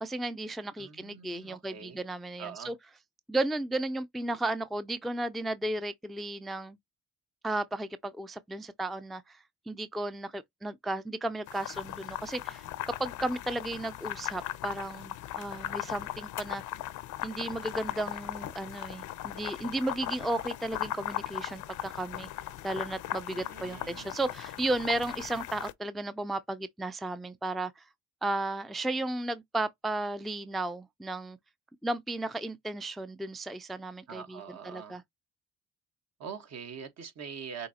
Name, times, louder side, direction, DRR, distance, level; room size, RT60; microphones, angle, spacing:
voice 1, 0.0-2.8 3.3-6.8 7.4-12.7 13.0-16.6 17.2-22.3 22.6-27.8 28.2-31.4 31.8-35.0, right 2 dB, ahead, 0.4 m, -34 dB
voice 2, 0.8-2.0 2.4-2.7 23.3-24.1 34.1-35.0 36.2-37.7, right 6 dB, 60° right, 1.4 m, -43 dB
sound 1, 11.5-25.7, left 14 dB, 80° left, 0.6 m, -38 dB
6.3 x 2.8 x 2.8 m
cardioid pair, 90°, 30 cm